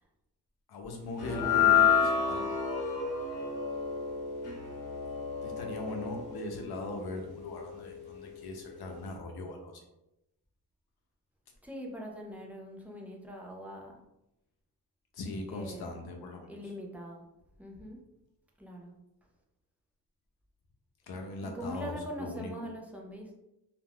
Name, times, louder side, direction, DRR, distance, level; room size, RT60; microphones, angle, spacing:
voice 1, 0.7-2.5 5.4-9.8 15.1-16.5 21.1-22.5, left 2 dB, 70° left, 3 dB, 0.7 m, -40 dB
sound 1, 1.2-7.6, left 7 dB, 55° left, 1.0 m, -29 dB
voice 2, 1.2-1.5 11.6-13.9 15.5-15.9 16.5-17.2 17.6-18.0 18.6-18.9 21.4-23.3, equal, 5° right, -2 dB, 0.3 m, -42 dB
2.4 x 2.2 x 3.3 m, 0.89 s
wide cardioid pair, 170°, 39 cm